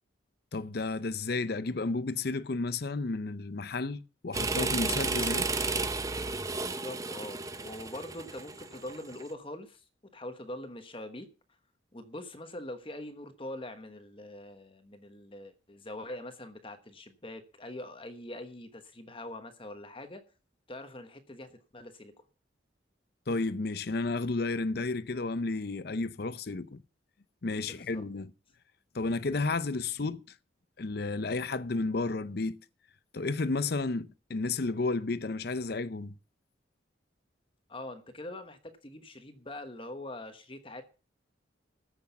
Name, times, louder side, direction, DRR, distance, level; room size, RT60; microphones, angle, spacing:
voice 1, 0.5-5.5 23.3-26.8 27.4-28.3 28.9-30.2 30.8-32.6 33.1-36.1, left 3 dB, 50° left, 0.6 m, -32 dB
sound 1, 4.3-9.2, right 3 dB, 15° right, 0.7 m, -32 dB
voice 2, 6.6-9.8 10.1-11.3 11.9-20.2 20.7-22.1 27.7-28.0 37.7-40.8, left 1 dB, 25° left, 1.1 m, -43 dB
14.5 x 6.3 x 7.0 m
head